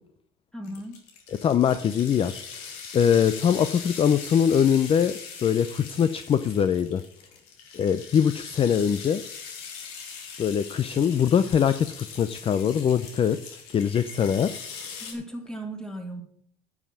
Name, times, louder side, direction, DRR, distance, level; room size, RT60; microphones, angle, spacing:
voice 1, 0.5-1.0 15.0-16.2, right 1 dB, 5° left, 4 dB, 2.5 m, -36 dB
sound 1, 0.6-15.1, left 6 dB, 85° left, 2.5 m, -41 dB
voice 2, 1.4-2.4 2.9-7.0 7.7-9.2 10.4-14.6 14.9-15.0, left 8 dB, 35° left, 13 dB, 0.6 m, -23 dB
9.8 x 7.2 x 6.3 m, 0.67 s
supercardioid pair, 110°, 17 cm